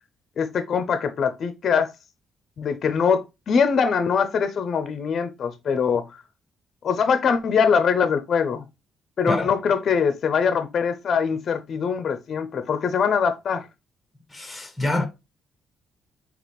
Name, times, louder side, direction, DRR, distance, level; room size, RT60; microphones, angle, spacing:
voice 1, 0.4-1.9 2.6-6.2 6.8-8.6 9.2-13.6, left 6 dB, 55° left, 0.6 m, -23 dB
voice 2, 14.3-15.1, left 2 dB, 10° left, 1.0 m, -26 dB
4.1 x 2.9 x 3.0 m
cardioid pair, 90°, 0 cm